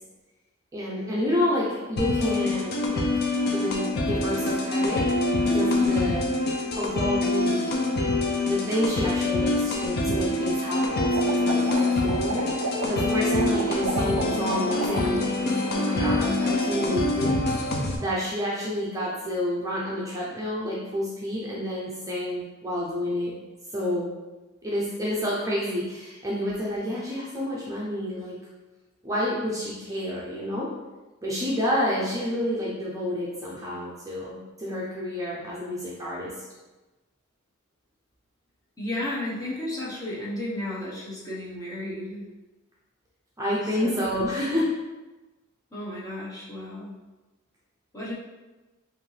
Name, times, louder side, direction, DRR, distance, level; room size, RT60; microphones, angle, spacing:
voice 1, 0.7-5.0 5.4-6.2 6.7-7.9 8.5-23.4 23.7-24.1 24.6-28.4 29.0-30.7 31.2-36.3 43.4-44.7, equal, 15° right, -6 dB, 0.6 m, -29 dB
sound 1, 2.0-18.0, left 2 dB, 50° left, 0.6 m, -25 dB
sound 2, 11.0-15.3 15.6-16.1, right 3 dB, 75° right, 0.4 m, -33 dB
voice 2, 38.8-42.3 43.7-44.3 45.7-47.0 47.9-48.1, left 1 dB, 15° left, -7 dB, 1.1 m, -33 dB
5.1 x 2.6 x 3.3 m, 1.1 s
head